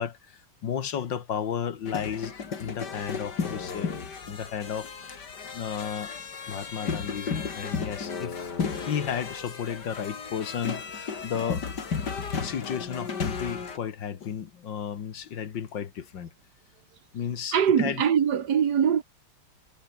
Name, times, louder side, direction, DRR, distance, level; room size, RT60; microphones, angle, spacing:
voice 1, 0.0-3.9 4.2-6.1 6.5-8.4 8.8-11.6 12.3-16.3 17.1-18.0, left 8 dB, 85° left, 2.3 m, -33 dB
sound 1, 1.9-13.8, left 5 dB, 65° left, 3.0 m, -34 dB
voice 2, 17.5-19.0, right 8 dB, 65° right, 2.0 m, -22 dB
omnidirectional pair, 1.9 m